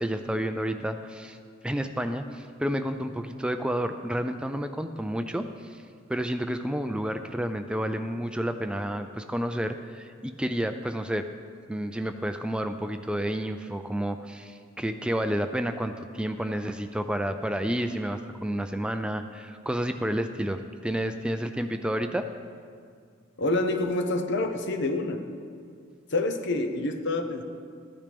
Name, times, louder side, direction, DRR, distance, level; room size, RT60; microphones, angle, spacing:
voice 1, 0.0-1.4 1.6-5.8 6.1-11.3 11.7-22.3, equal, 5° right, 8 dB, 0.3 m, -30 dB
voice 2, 23.4-25.2 26.1-27.4, left 2 dB, 60° left, 6 dB, 0.8 m, -27 dB
14.5 x 10.5 x 3.4 m, 2.2 s
head